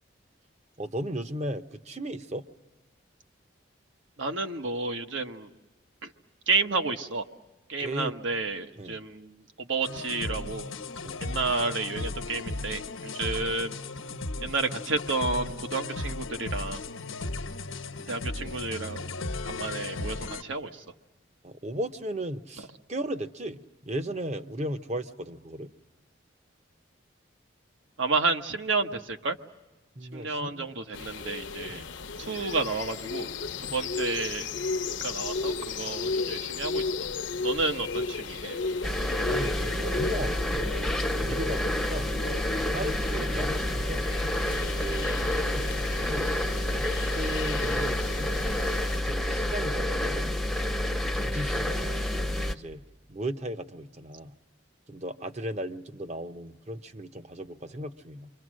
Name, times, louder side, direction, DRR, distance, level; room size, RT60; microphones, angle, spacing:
voice 1, 0.8-2.5 7.8-8.2 8.8-9.0 11.0-11.2 21.4-25.7 30.0-30.8 31.7-31.9 33.6-33.8 39.2-40.7 41.0-42.1 42.5-44.5 44.8-46.3 46.6-48.3 48.9-50.4 50.8-52.8 53.1-54.3 54.9-58.3, right 1 dB, 35° right, 9 dB, 0.8 m, -36 dB
voice 2, 4.2-5.5 6.0-6.1 6.5-7.2 7.7-9.3 9.6-10.7 11.2-13.8 14.4-16.8 18.1-19.1 19.4-20.8 28.0-29.4 30.1-31.8 32.2-33.3 33.6-34.5 35.0-37.1 37.4-38.8, right 3 dB, 70° right, 6 dB, 1.3 m, -31 dB
sound 1, 9.8-20.4, left 2 dB, 90° left, 1.1 m, -36 dB
sound 2, 30.9-49.0, left 4 dB, 65° left, 0.8 m, -35 dB
sound 3, 38.8-52.6, left 1 dB, ahead, 0.7 m, -29 dB
29.0 x 24.5 x 6.4 m, 1.2 s
head